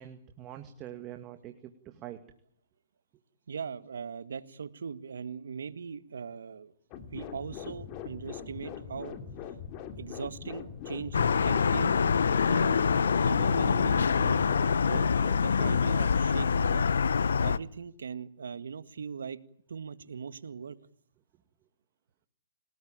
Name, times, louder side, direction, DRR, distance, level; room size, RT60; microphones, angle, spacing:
voice 1, 0.0-2.2, right 11 dB, 25° right, 7 dB, 2.2 m, -44 dB
voice 2, 3.5-6.7 7.1-9.2 10.0-12.0 12.5-12.8 13.2-14.4 14.8-15.1 15.4-16.9 17.4-19.4 19.7-20.8, right 6 dB, 85° right, 14 dB, 1.7 m, -39 dB
sound 1, 6.9-15.7, left 8 dB, 35° left, 3.4 m, -42 dB
sound 2, 11.1-17.6, left 6 dB, 85° left, 1.0 m, -25 dB
28.5 x 19.0 x 8.9 m, 0.68 s
hypercardioid pair, 140°, 0 cm